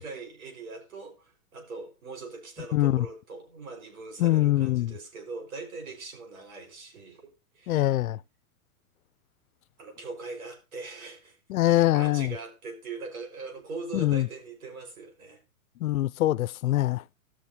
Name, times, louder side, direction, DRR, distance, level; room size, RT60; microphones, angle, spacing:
voice 1, 0.0-7.3 7.5-8.0 9.8-15.4, right 3 dB, 80° right, 5.1 m, -41 dB
voice 2, 2.7-3.1 4.2-4.9 7.7-8.2 11.5-12.3 13.9-14.3 15.8-17.0, left 15 dB, 80° left, 0.6 m, -23 dB
18.0 x 6.4 x 2.7 m
hypercardioid pair, 150°, 42 cm